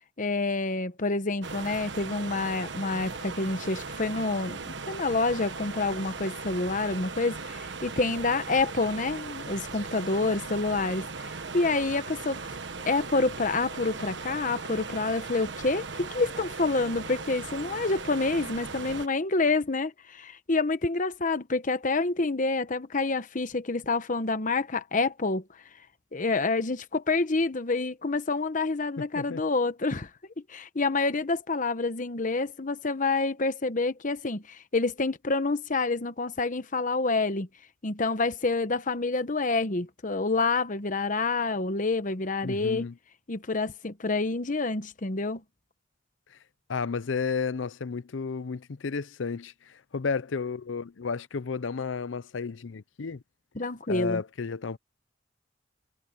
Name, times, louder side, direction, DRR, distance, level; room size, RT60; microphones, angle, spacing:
voice 1, 0.2-12.4 12.9-25.4 26.1-30.1 30.5-37.5 37.8-42.9 43.3-45.4 53.5-54.2, left 3 dB, 45° left, 1.0 m, -28 dB
sound 1, 1.4-19.1, right 4 dB, 65° right, 1.4 m, -38 dB
voice 2, 29.0-29.4 42.4-42.9 46.7-49.5 49.9-53.2 53.9-54.8, left 5 dB, 80° left, 0.6 m, -32 dB
head